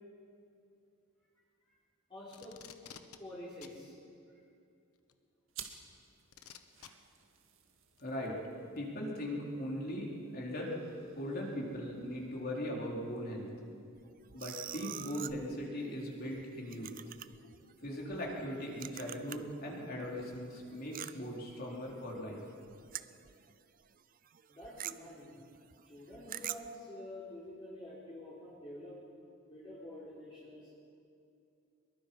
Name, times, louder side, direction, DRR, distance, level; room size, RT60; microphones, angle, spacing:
voice 1, 2.1-2.6 3.2-3.9 4.3-4.4 24.5-25.4 25.8-29.0 29.5-30.9, left 1 dB, 25° left, -9 dB, 4.4 m, -48 dB
Packing tape duct tape, 2.3-3.2 3.6-3.8 5.1-5.2 6.3-6.9 8.0-8.1, left 8 dB, 85° left, 1.2 m, -51 dB
sound 1, 5.5-14.5, right 8 dB, 65° right, 2.0 m, -56 dB
voice 2, 8.0-8.4 8.7-10.8 11.1-13.5 14.3-16.9 17.8-22.4, equal, 45° left, -2 dB, 4.2 m, -39 dB
sound 2, 14.0-19.6 19.9-23.5 23.8-24.0 24.2-26.8, right 12 dB, 40° right, 0.5 m, -46 dB
24.5 x 22.5 x 5.6 m, 2.5 s
head